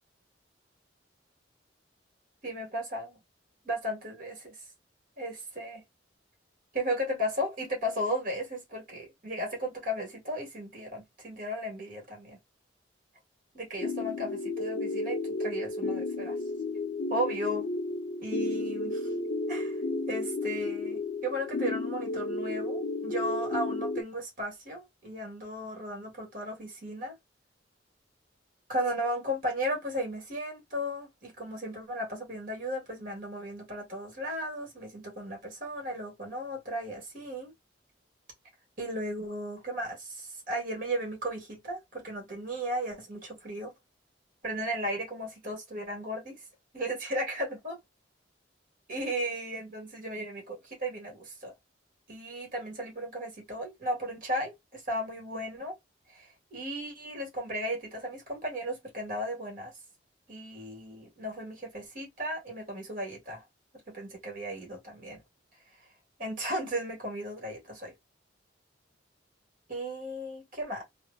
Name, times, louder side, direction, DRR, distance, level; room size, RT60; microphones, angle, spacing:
voice 1, 2.4-3.2 3.6-4.6 5.2-5.8 6.7-12.4 13.5-16.4 17.1-17.7 18.2-19.1 19.5-19.8 20.1-27.1 28.7-37.5 38.8-43.7 44.4-46.4 46.7-47.8 48.9-51.5 52.1-55.8 56.1-59.8 60.3-63.4 63.9-65.2 66.2-67.9 69.7-70.8, equal, 50° right, 1.6 m, -35 dB
sound 1, 13.8-24.0, left 2 dB, 45° left, 0.4 m, -32 dB
3.3 x 2.1 x 2.5 m
head